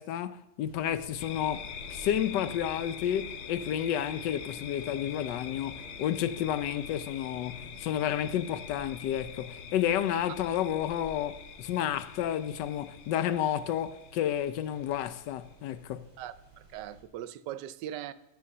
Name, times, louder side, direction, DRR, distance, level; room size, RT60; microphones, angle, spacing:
voice 1, 0.0-16.1, left 10 dB, 85° left, 1.3 m, -31 dB
sound 1, 0.6-17.0, right 2 dB, 25° left, 2.7 m, -55 dB
sound 2, 1.2-15.5, left 7 dB, 60° left, 0.8 m, -44 dB
voice 2, 16.2-18.1, right 11 dB, 85° right, 1.2 m, -40 dB
10.5 x 6.9 x 6.6 m
omnidirectional pair, 1.8 m